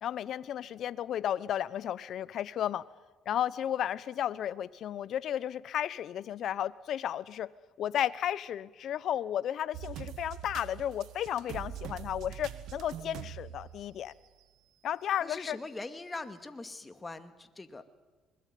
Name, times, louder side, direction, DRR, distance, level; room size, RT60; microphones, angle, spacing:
voice 1, 0.0-2.8 3.3-7.5 7.8-14.1 14.8-15.6, left 10 dB, 60° left, 0.9 m, -33 dB
sound 1, 9.7-14.4 14.9-15.0 15.9-16.0, right 11 dB, 70° right, 1.6 m, -43 dB
voice 2, 15.2-17.8, left 3 dB, 20° left, 2.2 m, -42 dB
26.5 x 21.5 x 9.5 m
supercardioid pair, 90°, 0 cm